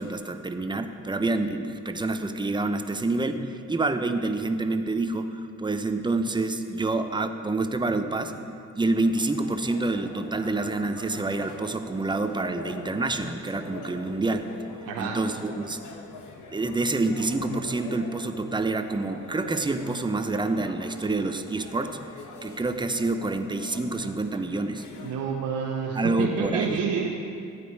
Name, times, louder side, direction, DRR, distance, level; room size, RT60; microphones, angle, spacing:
voice 1, 0.0-8.4 8.8-14.5 15.0-15.8 16.5-22.0 22.4-24.8 25.9-26.8, right 2 dB, 15° right, 7 dB, 0.8 m, -27 dB
sound 1, 9.1-25.2, left 4 dB, 75° left, 1.3 m, -45 dB
voice 2, 14.9-15.2 25.0-27.1, right 6 dB, 85° right, -2 dB, 1.1 m, -28 dB
14.0 x 9.2 x 4.7 m, 2.4 s
cardioid pair, 90°, 30 cm